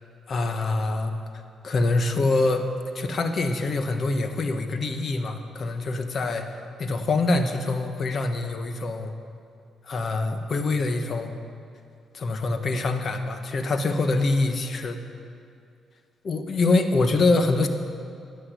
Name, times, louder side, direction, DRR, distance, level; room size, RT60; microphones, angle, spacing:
voice 1, 0.3-1.1 1.6-9.1 9.8-11.3 12.1-15.0 16.2-17.7, left 3 dB, 50° left, 7 dB, 1.3 m, -25 dB
12.0 x 10.0 x 8.3 m, 2.4 s
cardioid pair, 90°, 0 cm